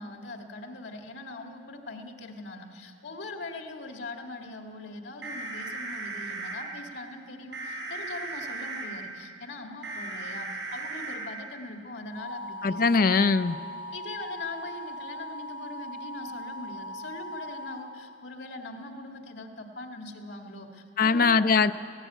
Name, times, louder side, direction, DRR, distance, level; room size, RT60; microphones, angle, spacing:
voice 1, 0.0-13.1 13.9-21.5, left 2 dB, 80° left, 4 dB, 2.0 m, -41 dB
sound 1, 5.2-6.5 7.5-8.9 9.8-11.2 12.1-17.7, right 2 dB, 80° right, 6.6 m, -38 dB
voice 2, 12.6-13.6 21.0-21.7, left 4 dB, 50° left, 12 dB, 0.5 m, -21 dB
17.5 x 16.5 x 9.1 m, 2.3 s
head